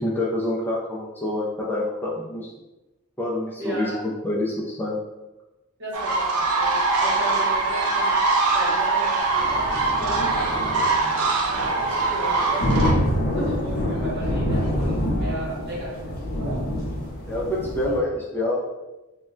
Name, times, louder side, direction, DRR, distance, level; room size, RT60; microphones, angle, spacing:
voice 1, 0.0-2.5 3.2-5.0 17.3-18.6, left 1 dB, 10° left, -5 dB, 0.4 m, -26 dB
voice 2, 3.6-4.0 5.8-8.2 8.5-10.4 11.3-16.7, right 1 dB, 55° right, -5 dB, 1.0 m, -35 dB
sound 1, 5.9-12.9, right 3 dB, 90° right, 0.5 m, -22 dB
sound 2, 9.2-18.0, equal, 45° left, 0.7 m, -27 dB
2.2 x 2.1 x 3.7 m, 1.0 s
head